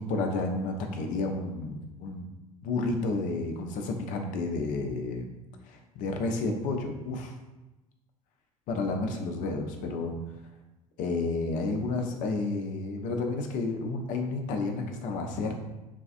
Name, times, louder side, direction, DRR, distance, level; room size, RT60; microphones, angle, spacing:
voice 1, 0.0-2.2 2.6-5.4 5.6-7.4 8.7-10.1 11.0-15.5, left 3 dB, 45° left, 4 dB, 0.5 m, -31 dB
3.4 x 2.3 x 2.5 m, 1.0 s
figure-of-eight pair, 70°, 19 cm